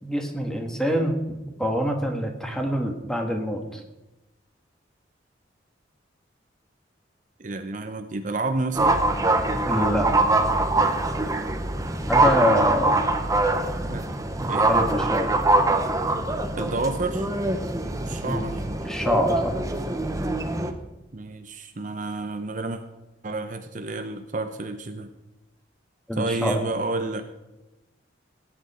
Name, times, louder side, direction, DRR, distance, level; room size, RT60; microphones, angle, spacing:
voice 1, 0.0-1.2 1.6-3.8 9.7-10.1 12.1-13.0 14.4-15.3 18.2-18.4 18.8-19.5 26.1-26.6, equal, 5° left, 3 dB, 1.6 m, -25 dB
voice 2, 7.4-9.0 13.9-14.0 14.5-14.7 16.6-17.3 18.0-18.6 21.1-22.8 23.2-25.1 26.1-27.2, right 3 dB, 40° right, 7 dB, 0.8 m, -30 dB
sound 1, 8.7-20.7, right 2 dB, 20° right, 0.9 m, -23 dB
18.5 x 8.9 x 4.4 m, 0.99 s
head